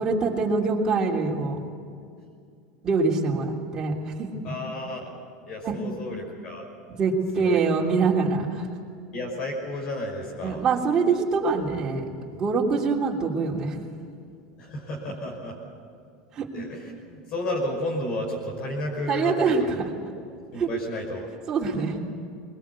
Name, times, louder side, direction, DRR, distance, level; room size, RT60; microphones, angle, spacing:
voice 1, 0.0-1.6 2.8-4.3 5.6-5.8 7.0-8.7 10.4-12.0 12.3-13.8 16.3-16.5 19.1-19.6 20.6-20.7 21.5-22.0, right 4 dB, 30° right, -2 dB, 3.3 m, -24 dB
voice 2, 4.4-5.0 5.5-6.7 7.4-7.9 9.1-10.6 14.6-15.6 16.5-19.5 20.5-21.3 21.8-21.9, left 1 dB, 50° left, 0 dB, 5.4 m, -32 dB
21.5 x 21.0 x 8.4 m, 2.4 s
supercardioid pair, 135°, 2 cm